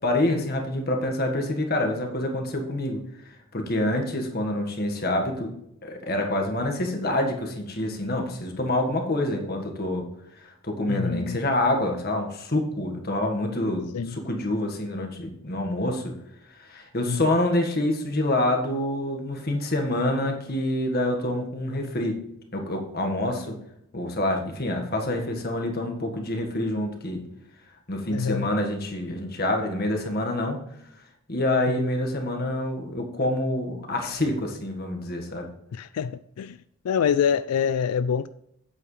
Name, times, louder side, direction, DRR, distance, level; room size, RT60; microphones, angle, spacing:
voice 1, 0.0-5.5 5.8-10.1 10.3-16.2 16.5-22.3 22.5-23.6 23.9-27.2 27.9-30.6 31.3-35.5, left 1 dB, 45° left, 1.7 m, -27 dB
voice 2, 10.9-11.4 13.9-14.1 17.0-17.2 28.1-28.5 31.7-31.9 35.7-36.6 36.8-38.3, left 7 dB, 90° left, 0.3 m, -26 dB
8.7 x 8.4 x 3.3 m
head